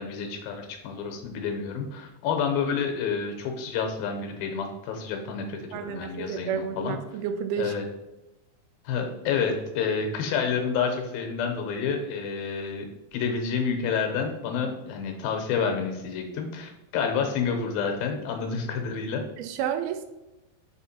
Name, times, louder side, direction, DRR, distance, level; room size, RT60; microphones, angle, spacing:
voice 1, 0.0-7.0 7.6-7.9 8.9-19.2, left 6 dB, 80° left, 4 dB, 2.5 m, -29 dB
voice 2, 5.7-7.8 19.4-20.1, right 8 dB, 85° right, 8 dB, 2.5 m, -30 dB
5.7 x 4.6 x 4.2 m, 0.99 s
omnidirectional pair, 4.4 m